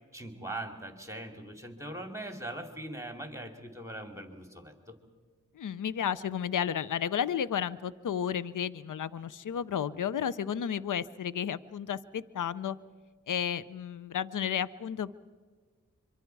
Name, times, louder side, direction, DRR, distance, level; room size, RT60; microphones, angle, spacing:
voice 1, 0.1-4.9, right 1 dB, 10° right, 5 dB, 2.8 m, -41 dB
voice 2, 5.6-12.8 13.3-15.1, left 8 dB, 85° left, 17 dB, 0.6 m, -32 dB
25.5 x 24.0 x 4.7 m, 1.5 s
cardioid pair, 45°, 30 cm